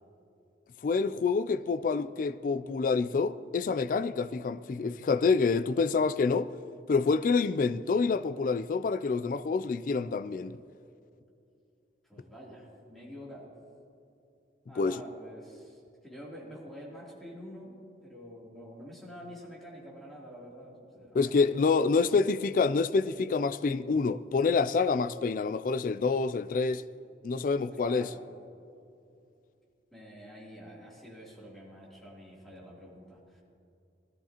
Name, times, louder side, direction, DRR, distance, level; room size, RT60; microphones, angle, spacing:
voice 1, 0.8-6.5 6.9-10.6 14.8-15.0 21.1-26.8 27.2-28.1, left 4 dB, 50° left, 0.3 m, -27 dB
voice 2, 12.1-13.5 14.7-17.7 18.0-22.2 27.7-28.2 29.9-33.4, equal, ahead, 3.0 m, -47 dB
20.0 x 13.5 x 2.9 m
head